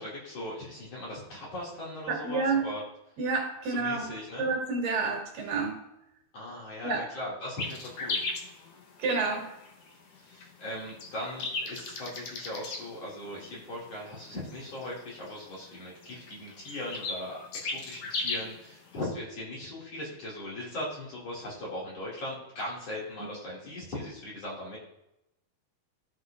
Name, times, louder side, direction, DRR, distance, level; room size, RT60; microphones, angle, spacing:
voice 1, 0.0-2.8 3.7-4.5 6.3-8.2 10.2-24.8, left 1 dB, 45° left, -6 dB, 3.1 m, -39 dB
voice 2, 2.1-2.7 3.2-4.1 4.4-5.7 6.8-7.0 9.0-9.4, right 4 dB, 65° right, -2 dB, 3.5 m, -29 dB
sound 1, 7.6-19.0, left 3 dB, 75° left, 1.4 m, -37 dB
15.0 x 6.3 x 2.5 m, 0.86 s
omnidirectional pair, 4.4 m